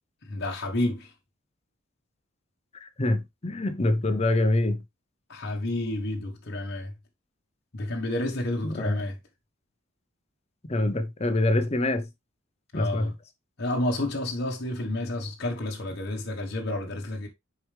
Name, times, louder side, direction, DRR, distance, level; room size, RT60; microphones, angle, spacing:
voice 1, 0.2-1.1 5.3-6.9 7.7-9.2 12.7-13.1 13.6-17.3, left 1 dB, 55° left, 1.2 m, -30 dB
voice 2, 2.8-4.8 8.6-9.0 10.6-12.1 12.7-13.1, left 2 dB, 30° left, 0.7 m, -25 dB
6.9 x 4.7 x 3.3 m
head